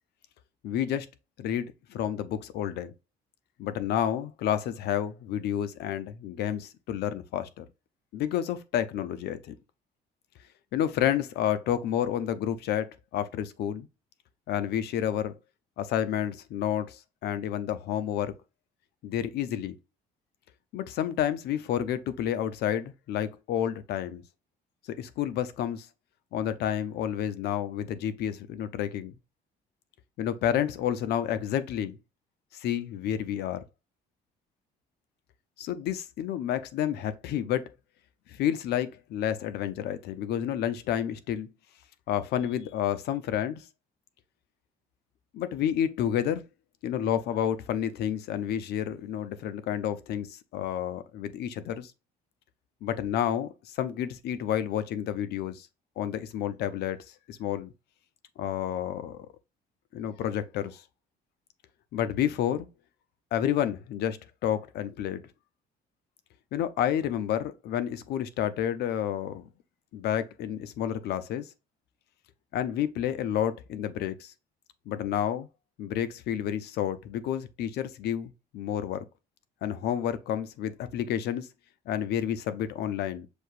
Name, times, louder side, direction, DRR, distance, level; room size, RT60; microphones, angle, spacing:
voice 1, 0.6-1.1 1.4-2.9 3.6-7.6 8.1-9.5 10.7-13.9 14.5-15.3 15.8-18.3 19.0-19.7 20.7-24.2 25.0-25.9 26.3-29.2 30.2-32.0 32.5-33.6 35.6-37.7 38.3-41.5 42.1-43.6 45.3-46.4 46.8-51.9 52.8-55.7 56.0-57.0 57.3-57.7 58.4-59.3 59.9-60.8 61.9-62.7 63.3-65.2 66.5-69.5 69.9-71.5 72.5-74.3 74.9-75.5 75.8-79.0 79.6-81.5 81.9-83.3, left 10 dB, 75° left, 0.6 m, -30 dB
6.3 x 2.8 x 2.5 m
cardioid pair, 110°, 17 cm